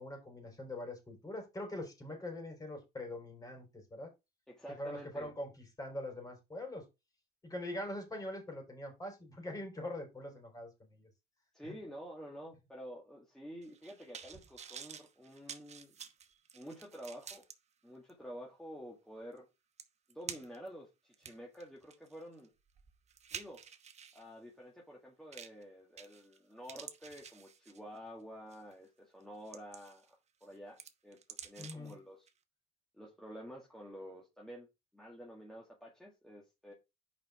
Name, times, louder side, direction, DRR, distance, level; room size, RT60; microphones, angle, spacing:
voice 1, 0.0-4.1 4.8-6.9 7.4-11.1 11.6-11.7 31.6-31.9, left 1 dB, 20° left, 3.8 m, -43 dB
voice 2, 4.5-5.3 11.5-15.9 16.5-17.4 17.8-19.4 20.1-22.5 23.3-23.6 24.1-30.0 30.4-31.2 31.4-32.2 32.9-34.7 34.9-36.7, equal, 5° left, 2.0 m, -49 dB
sound 1, 13.6-17.5 18.1-18.2 19.4-19.5 19.8-20.7 21.1-24.2 25.3-25.6 26.0-26.4 26.6-28.0 28.5-28.7 29.2-30.1 30.4-31.9 32.3-32.4, right 7 dB, 40° right, 1.1 m, -49 dB
5.6 x 5.2 x 4.8 m
cardioid pair, 110°, 17 cm